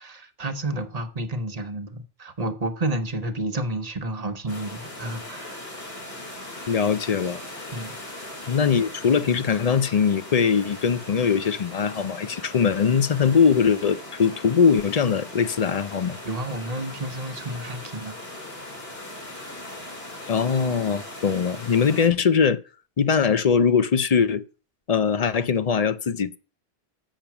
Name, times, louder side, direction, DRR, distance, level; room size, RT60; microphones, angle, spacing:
voice 1, 0.0-5.7 7.7-7.9 16.2-18.2, right 1 dB, 40° right, 1.0 m, -30 dB
sound 1, 4.5-22.1, left 1 dB, 70° left, 2.9 m, -39 dB
voice 2, 6.7-7.4 8.5-16.2 20.3-22.6 23.0-24.4 24.9-26.4, left 6 dB, 45° left, 0.6 m, -21 dB
7.3 x 6.9 x 5.9 m
omnidirectional pair, 1.1 m